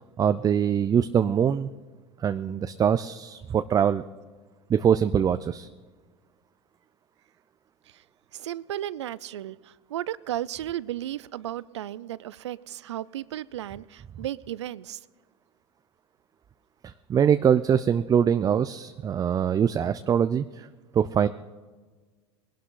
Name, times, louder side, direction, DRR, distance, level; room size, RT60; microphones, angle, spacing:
voice 1, 0.2-1.7 2.2-4.0 4.7-5.7 16.8-20.7 20.9-21.3, right 8 dB, 25° right, 11 dB, 0.5 m, -23 dB
voice 2, 8.3-15.0, right 12 dB, 85° right, 20 dB, 0.5 m, -34 dB
21.0 x 11.5 x 3.8 m, 1.4 s
hypercardioid pair, 95°, 14 cm